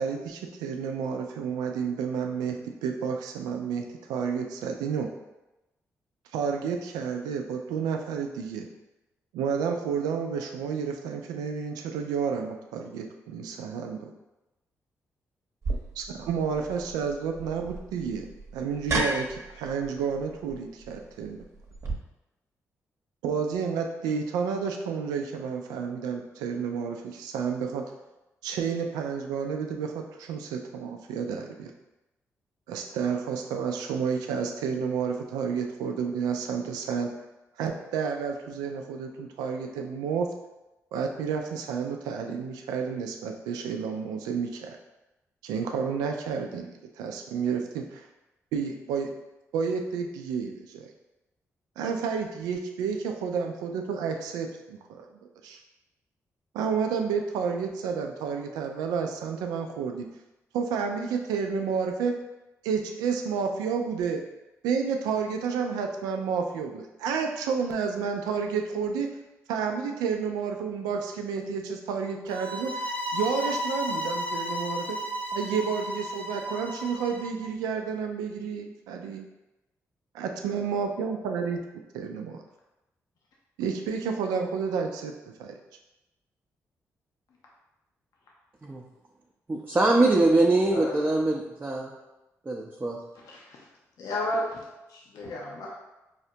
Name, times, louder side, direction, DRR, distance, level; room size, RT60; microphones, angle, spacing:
voice 1, 0.0-5.1 6.3-8.7 9.3-14.1 16.0-21.4 23.2-27.8 28.4-31.7 32.7-37.1 37.6-40.3 40.9-44.8 45.4-48.1 48.5-49.1 49.5-50.9 51.8-55.0 55.4-55.6 56.5-60.0 60.5-62.2 62.6-64.3 64.6-69.1 69.5-75.0 75.3-79.2 80.2-81.6 81.9-82.4 83.6-85.1 85.4-85.5, right 6 dB, 85° right, 4 dB, 0.3 m, -30 dB
sound 1, 15.6-21.9, right 2 dB, 50° right, 0.8 m, -34 dB
sound 2, 72.3-77.3, equal, 25° left, 0.7 m, -33 dB
voice 2, 89.5-91.9 92.5-93.0, right 2 dB, 25° right, -2 dB, 0.5 m, -23 dB
voice 3, 93.2-93.6 94.0-94.6 94.9-95.7, left 1 dB, 70° left, -2 dB, 0.6 m, -32 dB
4.8 x 2.1 x 2.7 m, 0.98 s
supercardioid pair, 50°, 6 cm